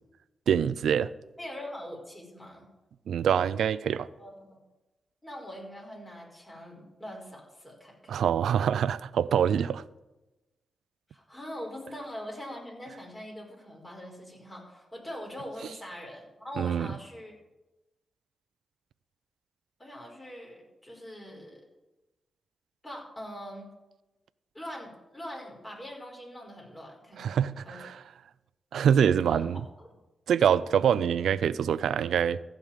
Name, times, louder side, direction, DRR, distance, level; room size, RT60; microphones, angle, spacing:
voice 1, 0.5-1.1 3.1-4.1 8.1-9.8 16.6-16.9 27.2-28.0 28.7-29.6 30.3-32.4, right 8 dB, 80° right, 0.4 m, -25 dB
voice 2, 1.4-2.7 4.2-4.6 5.2-8.2 11.1-17.3 19.8-21.6 22.8-23.7 24.5-27.4 27.6-27.8 29.3-29.9, equal, 20° left, 5.0 m, -42 dB
15.0 x 5.1 x 7.4 m
supercardioid pair, 45°, 0 cm